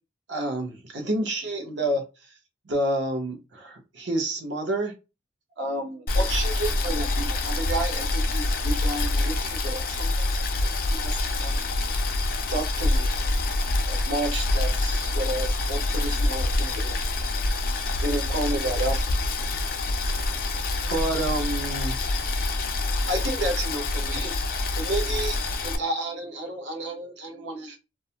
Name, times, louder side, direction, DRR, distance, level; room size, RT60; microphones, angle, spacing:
voice 1, 0.3-2.3 2.6-4.9 5.6-10.4 10.8-11.6 12.5-13.3 13.9-17.0 18.0-19.0 20.1-20.4 20.9-22.5 23.1-24.3 24.8-27.8, right 1 dB, 65° right, 0.8 m, -30 dB
Boiling, 6.1-25.8, left 2 dB, 50° left, 0.4 m, -26 dB
2.4 x 2.1 x 2.8 m
head